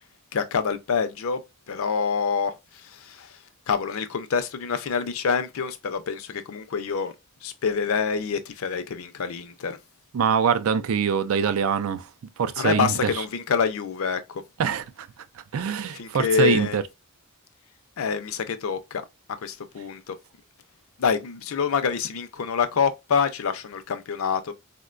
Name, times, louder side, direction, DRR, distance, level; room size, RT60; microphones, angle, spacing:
voice 1, 0.3-1.4 1.7-7.1 7.4-9.8 12.6-14.4 15.9-16.8 18.0-19.0 19.4-20.2 21.0-24.5, left 6 dB, 70° left, 0.5 m, -26 dB
voice 2, 10.1-12.1 12.4-13.1 14.6-15.1 15.5-16.8, right 7 dB, 70° right, 0.4 m, -24 dB
3.6 x 2.1 x 2.4 m
head